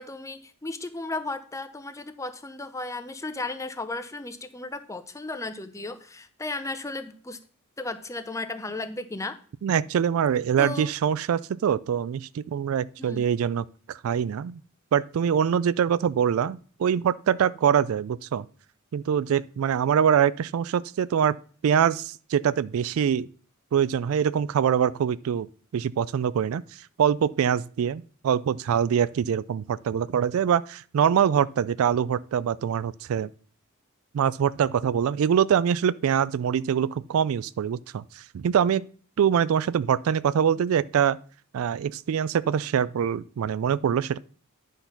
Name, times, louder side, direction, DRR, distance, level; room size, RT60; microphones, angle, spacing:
voice 1, 0.0-7.4 7.8-9.4 10.6-10.9 13.0-13.3, left 2 dB, 15° left, 0.6 m, -35 dB
voice 2, 9.6-14.6 14.9-18.5 18.9-21.4 21.6-23.3 23.7-25.5 25.7-26.6 27.0-33.3 34.1-38.9 39.2-41.2 41.5-44.2, right 8 dB, 70° right, 0.3 m, -24 dB
10.0 x 4.0 x 5.8 m
head